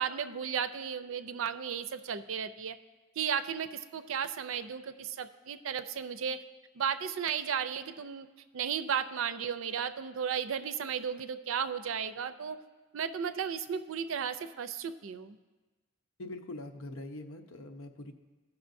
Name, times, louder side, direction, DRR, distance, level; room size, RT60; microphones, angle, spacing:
voice 1, 0.0-2.8 3.2-6.4 6.8-8.3 8.5-12.6 12.9-15.4, right 7 dB, 75° right, 11 dB, 0.4 m, -34 dB
voice 2, 16.2-18.1, left 2 dB, 85° left, 5 dB, 0.8 m, -43 dB
16.5 x 5.8 x 2.6 m, 1.3 s
head